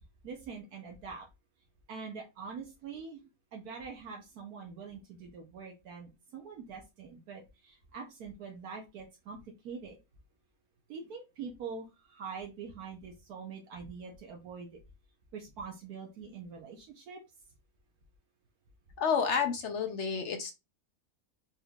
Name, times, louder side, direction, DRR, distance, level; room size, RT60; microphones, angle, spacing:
voice 1, 0.2-1.3 1.9-3.2 3.5-10.0 10.9-14.8 15.3-17.2, right 5 dB, 80° right, 1.3 m, -44 dB
voice 2, 19.0-20.5, left 6 dB, 60° left, 0.8 m, -30 dB
4.4 x 3.5 x 2.3 m
omnidirectional pair, 1.6 m